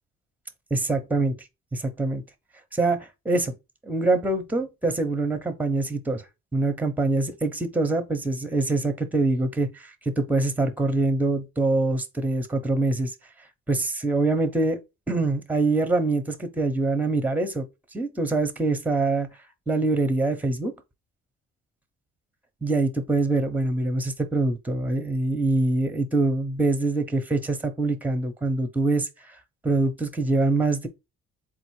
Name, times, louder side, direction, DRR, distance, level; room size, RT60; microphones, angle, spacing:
voice 1, 0.7-1.3 1.7-2.2 2.7-3.5 3.8-6.2 6.5-13.1 13.7-14.8 15.1-17.7 17.9-19.3 19.7-20.7 22.6-29.1 29.6-30.9, right 2 dB, 5° right, 0.7 m, -24 dB
3.8 x 2.5 x 4.6 m
cardioid pair, 90°, 30 cm